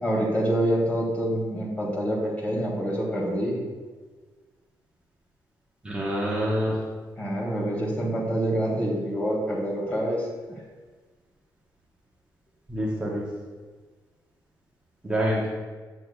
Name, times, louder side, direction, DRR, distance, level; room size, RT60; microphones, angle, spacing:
voice 1, 0.0-3.6 7.2-10.6, right 1 dB, 20° left, -4 dB, 2.0 m, -26 dB
voice 2, 5.8-6.8 12.7-13.3 15.0-15.5, equal, 15° right, -5 dB, 1.0 m, -26 dB
8.8 x 7.7 x 2.4 m, 1.4 s
wide cardioid pair, 150°, 8 cm